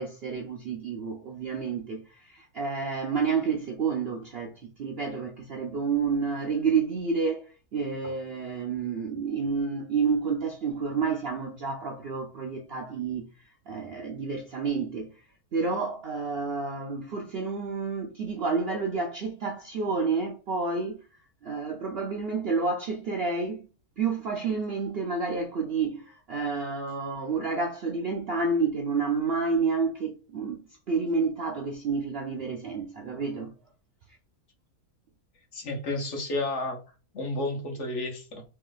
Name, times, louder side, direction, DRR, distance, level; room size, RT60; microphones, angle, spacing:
voice 1, 0.0-15.1 15.5-21.0 21.4-23.6 24.0-33.5, right 4 dB, 60° right, 0.6 m, -29 dB
voice 2, 35.5-36.8 37.1-38.4, left 2 dB, 55° left, 1.1 m, -31 dB
3.2 x 3.0 x 3.8 m
omnidirectional pair, 1.6 m